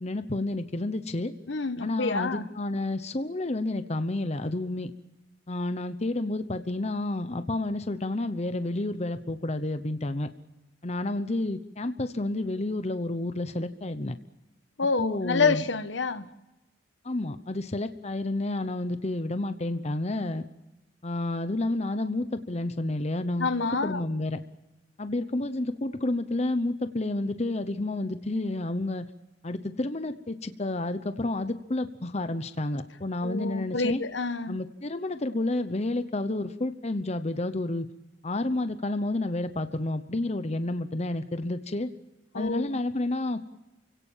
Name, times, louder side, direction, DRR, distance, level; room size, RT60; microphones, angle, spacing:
voice 1, 0.0-1.3 1.8-4.9 5.5-10.3 10.8-14.1 15.0-15.6 17.0-20.4 21.0-24.4 25.0-29.1 29.4-34.0 34.5-37.9 38.2-41.9 42.3-43.4, left 2 dB, 35° left, 0.9 m, -30 dB
voice 2, 1.5-2.5 14.8-16.3 23.4-24.0 33.2-34.5 42.3-42.8, left 4 dB, 75° left, 1.2 m, -28 dB
29.0 x 17.0 x 7.3 m
head